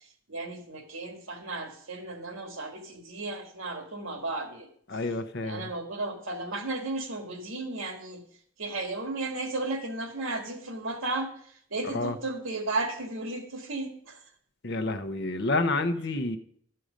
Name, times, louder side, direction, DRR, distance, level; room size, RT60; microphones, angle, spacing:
voice 1, 0.0-4.7 5.4-8.2 8.6-14.2, right 2 dB, 75° right, 5 dB, 1.9 m, -34 dB
voice 2, 4.9-5.7 11.8-12.2 14.6-16.4, left 2 dB, 55° left, 9 dB, 0.8 m, -29 dB
13.0 x 7.7 x 5.1 m, 0.62 s
head